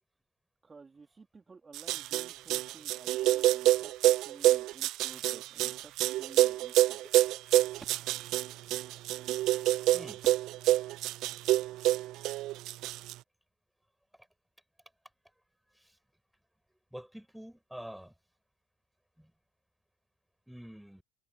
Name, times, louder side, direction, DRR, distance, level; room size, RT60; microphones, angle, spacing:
voice 1, 0.6-7.0, right 4 dB, 25° right, 2.8 m, -54 dB
sound 1, 1.7-13.1, right 15 dB, 55° right, 0.5 m, -27 dB
voice 2, 16.9-18.1 19.2-19.3 20.5-21.0, equal, ahead, 6.2 m, -46 dB
hypercardioid pair, 65°, 0 cm